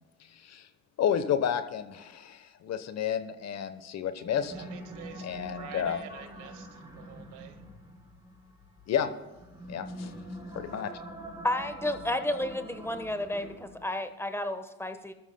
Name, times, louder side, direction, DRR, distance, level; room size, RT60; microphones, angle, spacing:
voice 1, 0.3-0.7 1.0-4.5 5.2-6.0 8.9-9.1 9.7-10.1 10.5-10.9, left 8 dB, 50° left, 11 dB, 1.1 m, -31 dB
sound 1, 4.2-14.0, equal, 10° right, 3.7 m, -45 dB
voice 2, 4.4-5.3 5.6-7.6, right 8 dB, 65° right, 7 dB, 1.8 m, -47 dB
voice 3, 11.4-15.1, left 1 dB, 5° left, 8 dB, 1.2 m, -32 dB
24.5 x 13.0 x 2.3 m, 1.1 s
hypercardioid pair, 65°, 33 cm